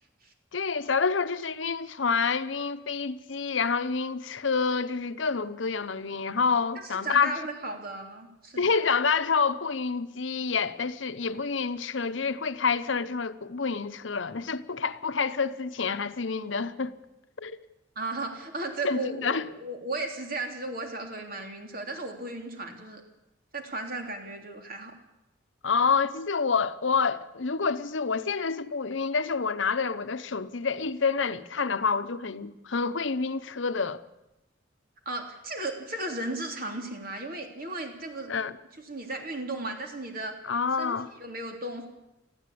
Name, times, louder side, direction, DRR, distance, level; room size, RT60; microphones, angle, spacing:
voice 1, 0.5-7.3 8.6-16.9 17.4-17.6 18.8-19.5 25.6-34.0 38.3-38.5 40.5-41.1, left 5 dB, 80° left, 0.9 m, -28 dB
voice 2, 6.8-8.8 17.9-23.0 23.5-24.9 35.0-38.3 38.8-40.3 40.8-41.9, right 2 dB, 50° right, 3.2 m, -35 dB
21.0 x 14.5 x 8.6 m
head